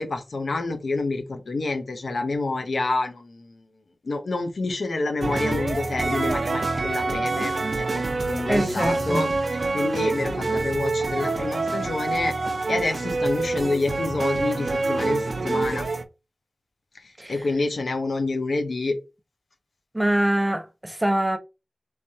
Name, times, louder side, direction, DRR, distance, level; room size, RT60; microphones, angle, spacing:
voice 1, 0.0-3.6 4.0-8.0 8.3-9.3 9.7-12.3 12.7-15.9 17.3-19.0, left 3 dB, 80° left, 0.7 m, -28 dB
sound 1, 5.2-16.0, right 3 dB, 60° right, 0.5 m, -26 dB
voice 2, 8.5-9.3 17.2-17.5 19.9-21.4, right 1 dB, 15° right, 0.6 m, -24 dB
3.3 x 3.2 x 2.8 m
wide cardioid pair, 65°, 0 cm